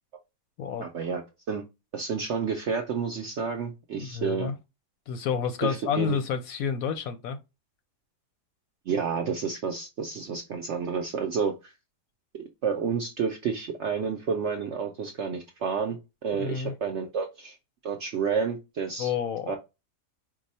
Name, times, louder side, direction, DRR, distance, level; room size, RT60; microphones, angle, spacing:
voice 1, 0.8-1.6 1.9-4.5 5.6-6.2 8.9-11.7 12.6-17.6 17.8-19.1 19.5-19.6, right 6 dB, 70° right, 0.7 m, -30 dB
voice 2, 3.9-4.5 5.1-7.4 16.3-16.7 19.0-19.6, left 7 dB, 70° left, 0.9 m, -29 dB
4.7 x 2.3 x 4.1 m
omnidirectional pair, 1.8 m